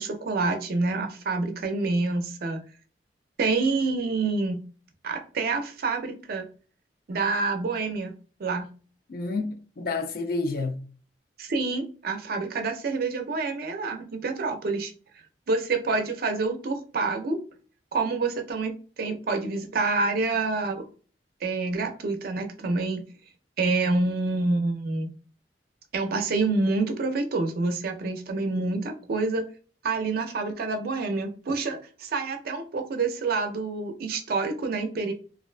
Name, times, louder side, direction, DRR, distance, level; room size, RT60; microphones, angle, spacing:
voice 1, 0.0-2.6 3.4-4.6 5.0-6.5 7.1-8.1 8.4-8.7 11.4-14.9 15.5-17.4 17.9-20.8 21.4-23.0 23.6-25.1 25.9-29.4 29.8-35.1, right 3 dB, 55° right, 0.4 m, -27 dB
voice 2, 9.1-10.8, left 3 dB, 55° left, 0.4 m, -29 dB
2.5 x 2.2 x 2.4 m
head